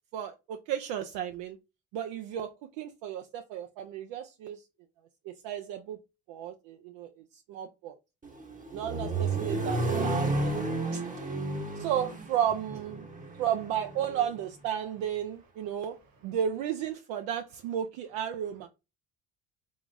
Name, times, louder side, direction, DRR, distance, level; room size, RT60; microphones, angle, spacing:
voice 1, 0.1-1.6 1.9-4.6 5.4-6.0 6.3-7.1 7.5-7.9 8.7-10.6 10.9-11.0 11.8-13.1 13.4-16.0 16.2-18.7, right 9 dB, 75° right, 0.6 m, -33 dB
Accelerating revving vroom, 8.2-14.3, right 2 dB, 20° right, 0.8 m, -32 dB
voice 2, 15.4-16.4, right 3 dB, 50° right, 1.3 m, -64 dB
3.6 x 3.5 x 2.5 m
supercardioid pair, 85°, 44 cm